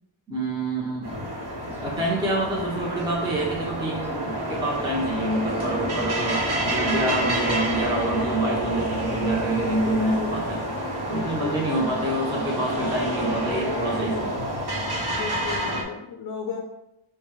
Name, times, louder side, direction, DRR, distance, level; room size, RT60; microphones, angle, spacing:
voice 1, 0.3-1.1 1.8-10.6 11.1-14.4, right 1 dB, 10° right, -4 dB, 0.6 m, -27 dB
sound 1, 1.0-15.8, equal, 55° right, 0.9 m, -28 dB
voice 2, 11.3-11.8 15.1-16.6, left 6 dB, 45° left, 1 dB, 0.5 m, -35 dB
5.1 x 2.2 x 3.0 m, 0.86 s
wide cardioid pair, 150°, 48 cm